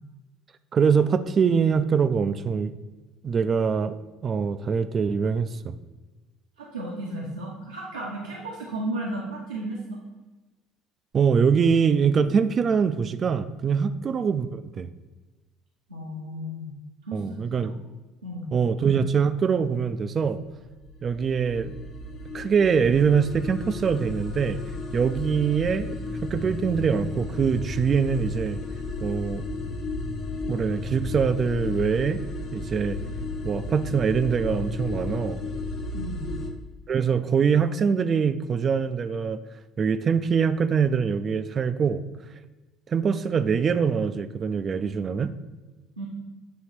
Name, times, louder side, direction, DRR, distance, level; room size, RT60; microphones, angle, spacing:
voice 1, 0.7-2.7 3.2-4.0 4.2-5.8 11.1-14.9 17.1-17.7 18.5-20.4 21.0-21.7 22.3-24.6 24.9-28.6 29.0-29.4 30.5-32.2 32.5-33.0 33.4-35.4 36.9-39.4 39.8-42.0 42.9-45.3, right 6 dB, 40° right, 12 dB, 0.3 m, -23 dB
voice 2, 6.6-10.0 15.9-16.7 17.0-17.7 18.2-18.5 35.9-36.2 46.0-46.1, right 1 dB, 85° right, -5 dB, 0.8 m, -34 dB
sound 1, 20.5-36.5, left 3 dB, 55° left, 1.1 m, -33 dB
7.3 x 3.1 x 4.4 m, 1.2 s
figure-of-eight pair, 60°, 0 cm